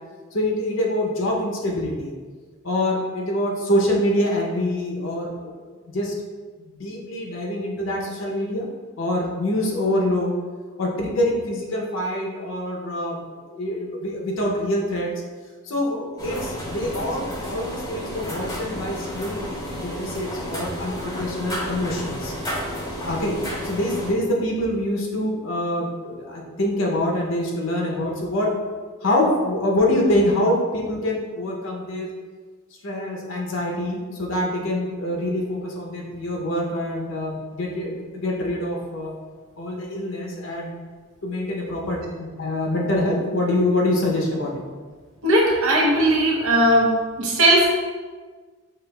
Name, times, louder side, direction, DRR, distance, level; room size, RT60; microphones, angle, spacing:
voice 1, 0.3-2.1 2.6-5.3 5.9-6.1 6.6-8.7 9.0-10.3 10.8-15.2 15.6-19.4 19.7-22.3 23.0-28.6 29.0-32.1 32.8-39.1 39.6-40.8 41.2-44.5, left 1 dB, 60° left, -1 dB, 0.7 m, -25 dB
sound 1, 16.2-24.1, equal, 15° left, 0.7 m, -31 dB
voice 2, 45.2-46.9 47.2-47.7, right 1 dB, 75° right, -3 dB, 0.9 m, -18 dB
5.7 x 2.9 x 2.3 m, 1.5 s
head